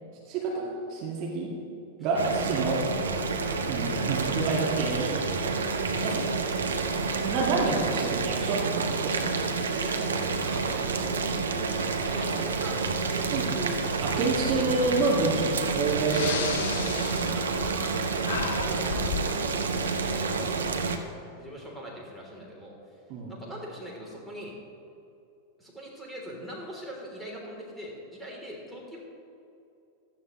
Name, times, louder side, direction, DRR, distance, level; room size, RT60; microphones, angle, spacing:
voice 1, 0.3-1.5 2.0-2.9 3.7-5.2 6.0-6.3 7.2-9.3 13.3-13.5 14.0-16.3 23.1-23.3, right 3 dB, 40° right, -2 dB, 1.9 m, -28 dB
voice 2, 2.1-2.9 5.9-6.4 9.8-12.8 13.1-14.4 16.2-20.9 21.3-22.7 23.3-24.6 25.6-29.0, equal, ahead, -4 dB, 3.3 m, -42 dB
Boiling, 2.2-21.0, right 4 dB, 70° right, 0.9 m, -29 dB
Breathing, 15.4-15.5 16.0-18.0 18.2-19.3, left 7 dB, 55° left, 0.8 m, -33 dB
16.0 x 13.0 x 3.2 m, 2.7 s
figure-of-eight pair, 90°, 0 cm